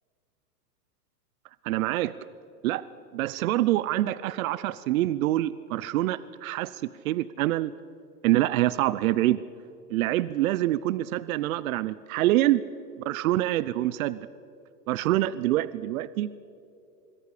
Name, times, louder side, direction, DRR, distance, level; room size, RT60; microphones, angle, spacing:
voice 1, 1.6-2.1 2.6-2.9 3.1-7.7 8.2-9.4 9.9-12.6 13.1-14.2 14.9-16.3, right 15 dB, 60° right, 17 dB, 0.7 m, -26 dB
25.5 x 23.0 x 5.0 m, 2.7 s
hypercardioid pair, 135°, 48 cm